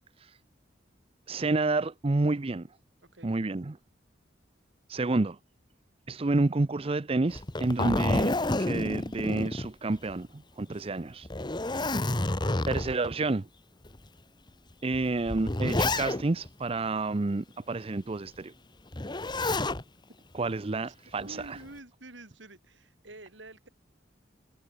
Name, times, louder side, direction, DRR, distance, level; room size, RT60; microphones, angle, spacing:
voice 1, 1.3-2.7 3.2-3.8 4.9-5.4 6.1-8.3 8.6-10.3 10.6-11.3 11.7-11.8 12.7-13.5 14.8-18.5 20.3-21.6, right 2 dB, 30° right, 0.6 m, -29 dB
Zipper (clothing), 7.3-10.2 10.6-10.7 11.2-13.1 13.8-14.0 14.9-16.5 18.9-19.8 21.2-21.7, left 2 dB, 25° left, 1.2 m, -29 dB
voice 2, 21.2-23.7, right 1 dB, 80° right, 7.0 m, -48 dB
head